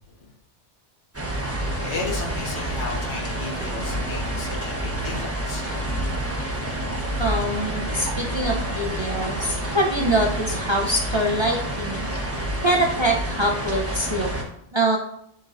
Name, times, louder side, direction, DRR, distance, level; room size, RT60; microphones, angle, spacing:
sound 1, 1.1-14.4, right 1 dB, 15° right, 1.0 m, -28 dB
voice 1, 1.8-5.8, left 3 dB, 85° left, -1 dB, 1.6 m, -34 dB
voice 2, 7.2-12.1 12.6-14.3 14.7-15.0, right 1 dB, 30° right, 0 dB, 0.5 m, -24 dB
10.5 x 4.0 x 2.6 m, 0.75 s
omnidirectional pair, 1.2 m